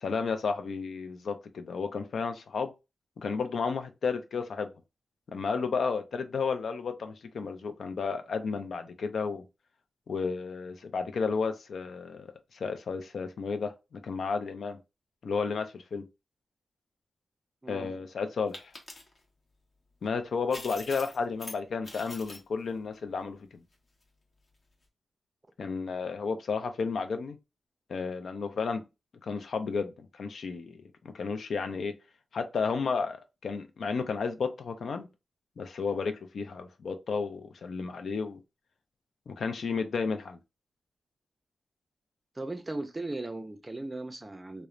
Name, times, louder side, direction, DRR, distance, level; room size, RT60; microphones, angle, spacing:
voice 1, 0.0-2.7 3.2-4.7 5.3-9.4 10.1-12.3 12.5-14.8 15.2-16.0 17.7-18.7 20.0-23.6 25.6-27.4 27.9-28.8 29.2-31.9 32.3-35.1 35.6-38.4 39.3-40.4, left 5 dB, 75° left, 0.4 m, -32 dB
sound 1, 18.5-19.2 20.5-21.6 21.8-22.4, left 2 dB, 40° left, 0.8 m, -43 dB
voice 2, 42.4-44.7, right 2 dB, 25° right, 0.4 m, -37 dB
3.0 x 2.0 x 2.4 m
wide cardioid pair, 90°, 0 cm